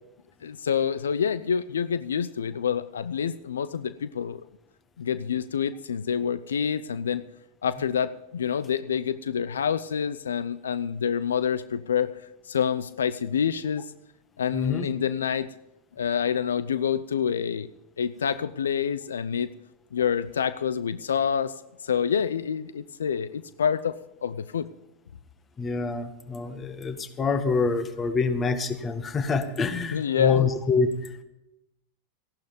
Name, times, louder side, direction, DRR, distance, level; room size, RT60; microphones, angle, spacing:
voice 1, 0.4-4.4 5.0-7.2 7.6-12.1 12.5-13.8 14.4-15.5 16.0-17.7 18.0-19.5 19.9-21.5 21.8-23.9 24.2-24.7 29.9-30.5, left 7 dB, 80° left, 15 dB, 0.5 m, -27 dB
voice 2, 14.5-14.9 25.6-31.2, left 4 dB, 25° left, 8 dB, 1.8 m, -26 dB
16.0 x 11.5 x 5.3 m, 0.90 s
hypercardioid pair, 95°, 0 cm